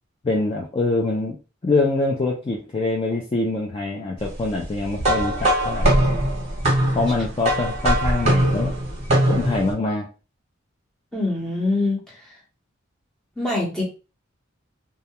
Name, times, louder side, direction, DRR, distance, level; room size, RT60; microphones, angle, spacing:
voice 1, 0.2-1.4 1.6-5.9 6.9-8.7 9.3-10.1, left 2 dB, 25° left, -1 dB, 0.4 m, -24 dB
sound 1, 5.0-9.7, right 1 dB, 35° right, 0.9 m, -21 dB
voice 2, 11.1-12.2 13.4-13.8, left 2 dB, 5° left, -4 dB, 0.8 m, -24 dB
2.3 x 2.2 x 2.7 m, 0.32 s
head